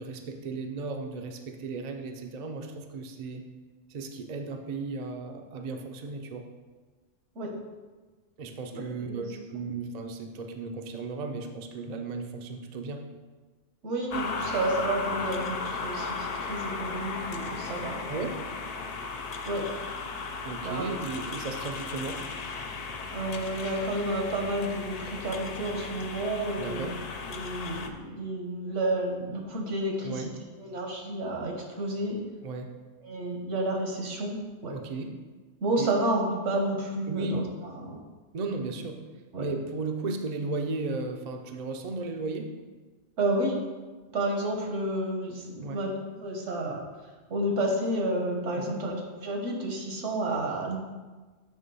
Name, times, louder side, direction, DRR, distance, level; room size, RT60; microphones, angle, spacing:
voice 1, 0.0-3.5 3.9-6.5 8.4-13.0 18.1-18.4 20.4-22.2 26.6-27.0 30.0-30.3 32.4-32.7 34.7-35.1 35.8-35.9 37.1-37.4 38.3-39.0 39.4-42.5 45.6-45.8 48.6-48.8, right 3 dB, 45° right, 4 dB, 0.5 m, -35 dB
voice 2, 8.7-9.3 13.8-18.0 19.4-19.6 20.6-20.9 23.1-27.0 27.2-30.3 30.6-32.2 33.0-34.3 34.6-34.7 35.6-38.0 39.3-39.5 43.2-43.6 44.1-46.8 47.3-50.8, right 1 dB, 75° right, 1 dB, 1.5 m, -30 dB
sound 1, 14.1-27.9, left 4 dB, 65° left, 0.4 m, -36 dB
7.2 x 3.5 x 5.4 m, 1.3 s
omnidirectional pair, 1.2 m